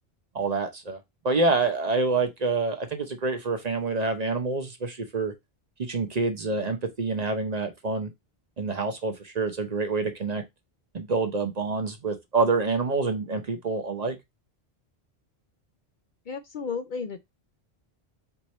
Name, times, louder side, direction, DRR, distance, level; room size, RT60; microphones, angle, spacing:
voice 1, 0.3-1.0 1.2-5.3 5.8-8.1 8.6-10.4 10.9-14.2, right 3 dB, 45° right, 0.7 m, -27 dB
voice 2, 16.3-17.2, left 5 dB, 55° left, 0.6 m, -33 dB
4.7 x 2.6 x 4.1 m
omnidirectional pair, 1.1 m